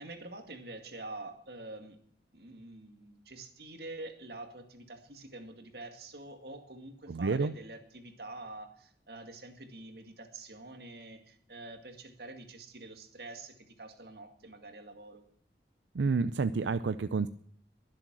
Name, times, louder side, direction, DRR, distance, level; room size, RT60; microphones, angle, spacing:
voice 1, 0.0-2.0 2.3-15.3, right 2 dB, 65° right, 6 dB, 2.1 m, -46 dB
voice 2, 7.1-7.5 15.9-17.3, right 4 dB, 90° right, 13 dB, 0.5 m, -29 dB
22.0 x 7.8 x 6.2 m, 0.63 s
head